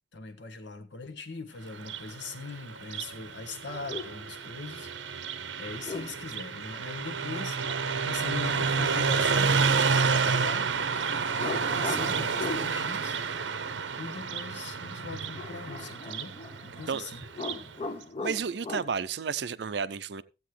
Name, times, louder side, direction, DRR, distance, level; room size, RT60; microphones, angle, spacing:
voice 1, 0.1-7.6 8.0-9.5 9.9-10.7 11.3-13.2 14.0-16.3 16.6-17.3, left 4 dB, 75° left, 1.2 m, -41 dB
Car passing by, 1.7-17.7, right 5 dB, 90° right, 0.8 m, -30 dB
sound 1, 3.6-4.2 5.7-6.3 7.3-8.4 11.4-12.7 15.4-17.0 17.2-18.9, left 3 dB, 30° left, 0.6 m, -39 dB
voice 2, 16.9-17.3 18.2-20.2, right 6 dB, 65° right, 0.5 m, -32 dB
14.5 x 8.3 x 3.2 m
head